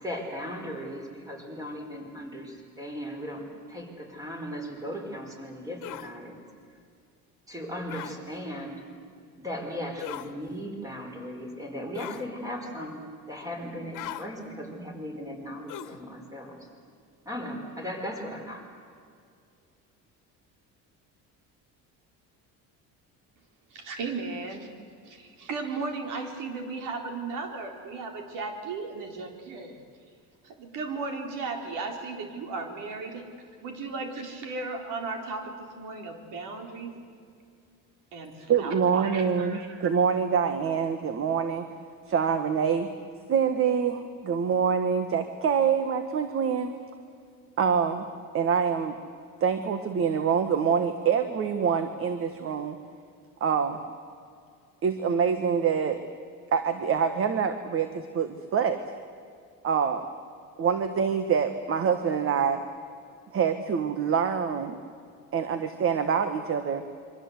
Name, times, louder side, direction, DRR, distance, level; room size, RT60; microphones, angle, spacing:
voice 1, 0.0-6.4 7.5-8.8 9.4-13.0 13.3-16.7 17.2-18.6, equal, 10° right, 2 dB, 4.8 m, -37 dB
sound 1, 5.8-6.1 7.9-8.2 10.0-10.3 11.9-12.3 13.9-14.3 15.7-16.0, left 14 dB, 65° left, 1.6 m, -38 dB
voice 2, 23.7-24.7 25.0-29.8 30.4-33.3 33.6-37.0 38.1-38.7 39.0-39.7, right 4 dB, 70° right, 4 dB, 4.1 m, -36 dB
voice 3, 38.5-41.6 42.1-42.9 43.3-46.7 47.6-48.0 48.3-49.0 49.4-52.8 53.4-53.8 54.8-56.0 56.5-58.8 59.6-60.0 60.6-62.6 63.3-64.8 65.3-66.8, right 7 dB, 40° right, 9 dB, 1.5 m, -25 dB
27.5 x 24.0 x 8.2 m, 2.3 s
cardioid pair, 150°, 33 cm